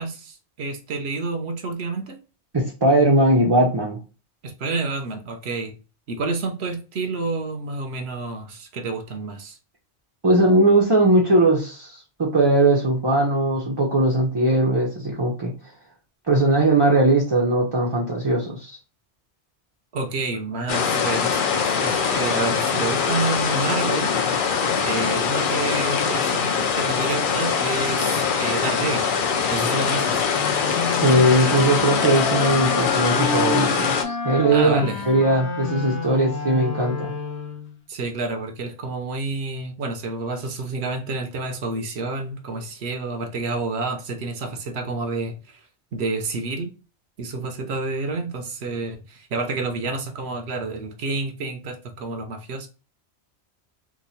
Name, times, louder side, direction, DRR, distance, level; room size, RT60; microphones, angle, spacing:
voice 1, 0.0-2.2 4.4-5.8 6.1-9.6 19.9-24.2 24.8-29.1 29.5-30.3 34.5-35.0 37.9-45.6 45.9-46.7 47.2-52.7, right 3 dB, 70° right, 6 dB, 0.9 m, -29 dB
voice 2, 2.5-4.0 10.2-15.5 16.3-18.8 31.0-37.1, right 1 dB, 30° right, -3 dB, 0.5 m, -19 dB
sound 1, 20.7-34.0, left 6 dB, 55° left, 0.6 m, -23 dB
sound 2, 30.3-37.8, left 4 dB, 80° left, 0.9 m, -29 dB
2.9 x 2.2 x 4.0 m, 0.33 s
omnidirectional pair, 1.1 m